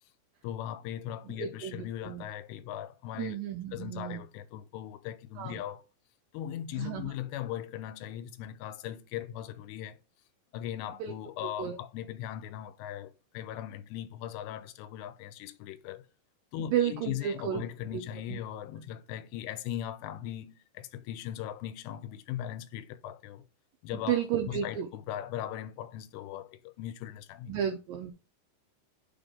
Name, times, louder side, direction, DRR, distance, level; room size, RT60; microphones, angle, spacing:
voice 1, 0.4-3.4 3.7-5.8 6.3-10.0 10.5-16.1 16.5-23.5 23.8-24.2 24.5-27.6, left 11 dB, 85° left, 2.7 m, -39 dB
voice 2, 1.4-2.2 3.2-4.2 5.4-5.6 6.8-7.1 11.0-11.1 11.6-11.8 16.7-17.6 18.3-18.4 24.1-24.9 27.5-28.1, right 9 dB, 85° right, 2.0 m, -32 dB
6.0 x 3.7 x 5.0 m
omnidirectional pair, 4.9 m